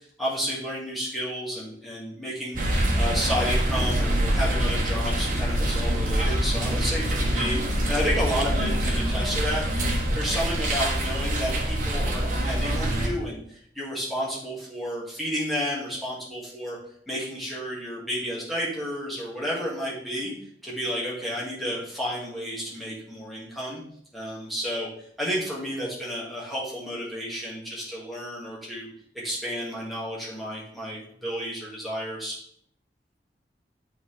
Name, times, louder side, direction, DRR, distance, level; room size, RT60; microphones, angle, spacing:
voice 1, 0.2-2.6 3.0-16.8 17.1-20.3 20.6-23.8 24.1-24.9 25.2-28.9 29.2-32.4, equal, ahead, -6 dB, 2.0 m, -31 dB
sound 1, 2.6-13.1, right 1 dB, 45° right, 1.4 m, -25 dB
8.7 x 4.2 x 3.4 m, 0.66 s
head